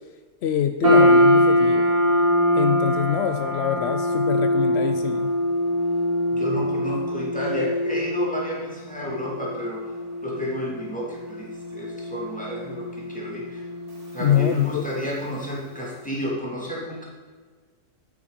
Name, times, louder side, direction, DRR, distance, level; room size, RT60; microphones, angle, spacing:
voice 1, 0.4-1.9 2.5-5.3 14.2-14.9, left 9 dB, 75° left, 8 dB, 0.6 m, -25 dB
sound 1, 0.8-15.2, left 1 dB, 65° right, 2.6 m, -23 dB
voice 2, 6.3-9.9 10.2-13.6 14.1-17.0, equal, 5° left, -4 dB, 2.6 m, -31 dB
8.7 x 8.5 x 5.1 m, 1.5 s
omnidirectional pair, 1.7 m